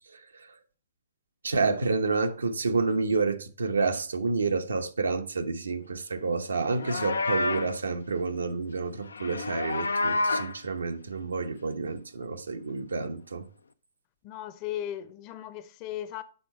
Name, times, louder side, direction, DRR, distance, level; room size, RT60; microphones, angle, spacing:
voice 1, 0.1-0.5 1.4-13.5, right 4 dB, 85° right, 0.9 m, -29 dB
Livestock farm animals working animals, 6.6-7.8 9.1-10.6, left 3 dB, 90° left, 0.6 m, -29 dB
voice 2, 14.2-16.2, left 11 dB, 35° left, 0.7 m, -36 dB
6.8 x 4.7 x 4.5 m
hypercardioid pair, 130°, 0 cm